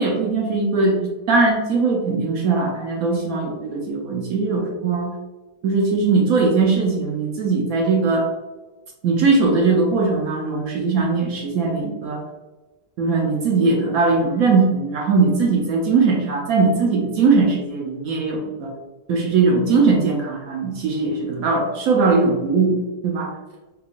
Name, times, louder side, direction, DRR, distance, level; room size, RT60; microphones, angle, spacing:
voice 1, 0.0-5.1 5.6-8.3 9.0-12.2 13.0-18.7 19.1-23.3, right 4 dB, 65° right, 0 dB, 1.0 m, -20 dB
3.6 x 3.2 x 2.4 m, 1.2 s
omnidirectional pair, 1.9 m